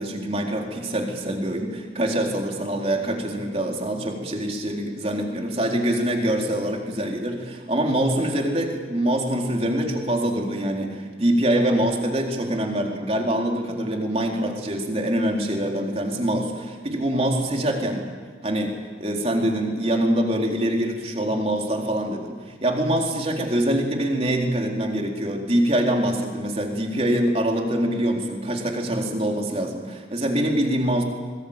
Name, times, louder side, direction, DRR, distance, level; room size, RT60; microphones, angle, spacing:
voice 1, 0.0-18.1 18.4-18.7 19.0-31.0, right 1 dB, 35° right, 1 dB, 4.1 m, -24 dB
25.5 x 22.0 x 8.9 m, 1.5 s
head